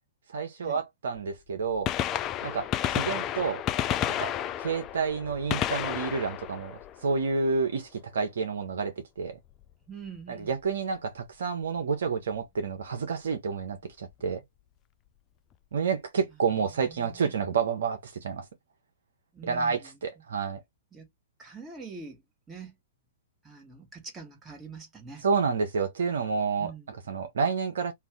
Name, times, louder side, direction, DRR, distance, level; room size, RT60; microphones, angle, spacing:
voice 1, 0.3-1.9 2.4-3.6 4.2-4.3 4.6-9.4 10.3-14.4 15.7-18.4 19.4-20.6 25.2-27.9, right 5 dB, 65° right, 0.8 m, -29 dB
Gunshot gunfire, 1.2-1.3 1.7-7.6 9.5-9.6 10.7-10.8 12.3-12.4 13.8-13.9 14.1-14.2, left 11 dB, 30° left, 0.3 m, -31 dB
voice 2, 9.8-10.5 16.7-17.4 19.3-20.0 20.9-21.1 21.4-22.2 22.5-22.8 23.4-25.2 26.6-27.0, right 5 dB, 15° right, 1.4 m, -44 dB
2.6 x 2.3 x 3.5 m
figure-of-eight pair, 115°, 0 cm